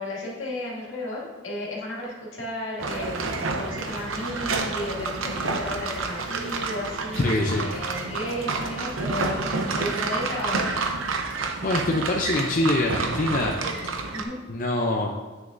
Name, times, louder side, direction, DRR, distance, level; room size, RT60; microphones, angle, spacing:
voice 1, 0.0-10.8 14.1-14.4, left 1 dB, 75° left, -4 dB, 2.2 m, -34 dB
sound 1, 2.8-14.2, right 3 dB, 80° right, 0.7 m, -29 dB
voice 2, 7.1-7.7 11.6-13.6 14.5-15.2, left 2 dB, 40° left, 0 dB, 0.5 m, -24 dB
9.1 x 6.3 x 2.6 m, 1.3 s
head